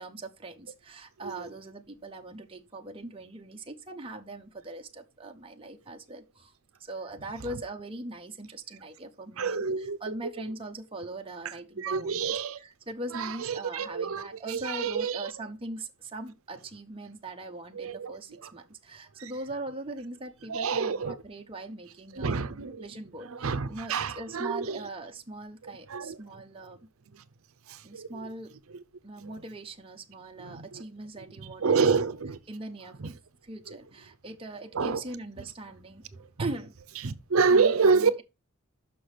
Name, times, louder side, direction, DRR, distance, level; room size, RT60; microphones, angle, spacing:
voice 1, 0.0-6.5 6.8-22.4 22.8-26.9 27.8-28.5 29.0-31.8 32.5-33.0 33.4-36.7 37.5-38.2, right 2 dB, 25° right, 0.8 m, -41 dB
voice 2, 9.4-10.1 11.4-12.6 13.1-15.3 17.7-18.1 18.4-18.5 19.2-19.3 20.5-21.2 22.1-22.9 23.3-24.8 25.9-26.2 27.1-27.2 27.7-28.3 29.2-29.3 30.4-30.8 31.4-32.4 33.0-33.1 33.7-33.8 34.7-35.0 36.2-36.3 37.0-38.1, right 5 dB, 75° right, 0.6 m, -28 dB
6.1 x 6.0 x 4.9 m
head